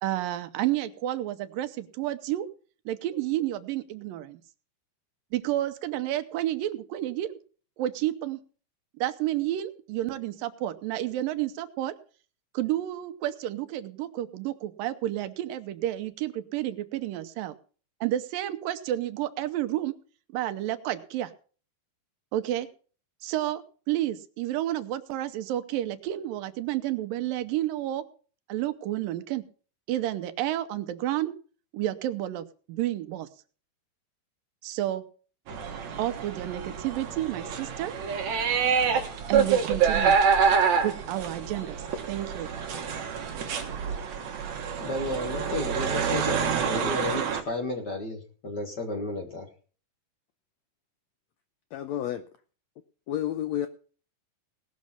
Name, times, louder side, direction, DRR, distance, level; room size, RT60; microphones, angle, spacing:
voice 1, 0.0-2.5 2.9-4.4 5.3-7.4 7.8-8.4 9.0-11.9 12.5-17.6 18.0-19.9 20.3-21.3 22.3-22.7 23.2-28.1 28.5-29.4 29.9-31.3 31.7-33.3 34.6-35.1 36.0-37.9 39.3-40.2 40.8-42.5, right 13 dB, 90° right, 2.6 m, -30 dB
sound 1, 35.5-47.4, right 6 dB, 60° right, 2.5 m, -27 dB
voice 2, 44.8-49.5, left 2 dB, 45° left, 1.5 m, -33 dB
voice 3, 51.7-52.2 53.1-53.7, left 11 dB, 85° left, 1.5 m, -30 dB
19.0 x 6.4 x 5.7 m
omnidirectional pair, 3.9 m